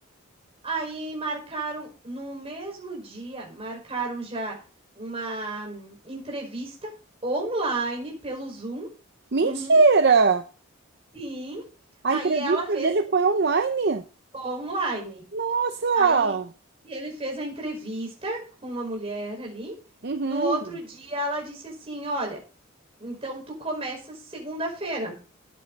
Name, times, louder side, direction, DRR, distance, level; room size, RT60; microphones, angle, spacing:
voice 1, 0.6-4.6 5.0-6.9 7.2-8.9 9.4-9.8 11.1-11.6 12.1-12.9 14.3-15.2 15.9-16.4 16.8-19.7 20.3-22.4 23.0-25.2, right 2 dB, 25° right, 0 dB, 5.4 m, -32 dB
voice 2, 9.3-10.4 12.0-14.0 15.3-16.5 20.0-20.6, right 4 dB, 50° right, 8 dB, 0.7 m, -21 dB
13.0 x 10.0 x 4.1 m, 0.38 s
head